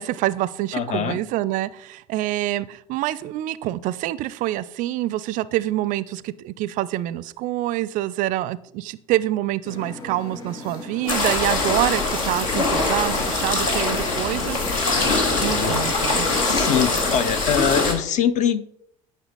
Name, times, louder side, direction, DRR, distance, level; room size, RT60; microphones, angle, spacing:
voice 1, 0.0-14.7 15.4-16.3, right 15 dB, 45° right, 0.4 m, -26 dB
voice 2, 0.7-1.2 15.3-15.8 16.4-18.6, left 8 dB, 45° left, 0.6 m, -23 dB
sound 1, 9.7-17.4, left 3 dB, 25° left, 3.4 m, -36 dB
sound 2, 11.1-17.9, left 3 dB, 70° left, 1.7 m, -23 dB
11.0 x 5.4 x 4.0 m
figure-of-eight pair, 65°, 18 cm